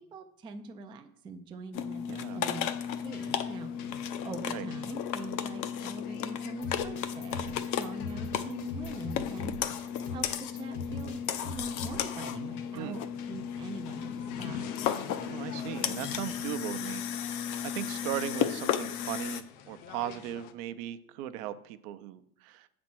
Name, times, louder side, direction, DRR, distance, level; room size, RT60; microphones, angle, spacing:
voice 1, 0.1-9.7 10.1-10.2 10.5-14.6, right 3 dB, 10° right, 5 dB, 0.3 m, -44 dB
sound 1, 1.7-19.4, left 8 dB, 50° left, 0.6 m, -34 dB
voice 2, 2.1-2.4 4.4-4.7 12.8-13.0 15.1-22.7, right 12 dB, 65° right, 11 dB, 0.6 m, -38 dB
sound 2, 2.3-20.5, left 8 dB, 85° left, 0.8 m, -48 dB
sound 3, 6.6-12.1, left 3 dB, 65° left, 1.4 m, -41 dB
7.2 x 4.3 x 6.1 m, 0.72 s
supercardioid pair, 110°, 44 cm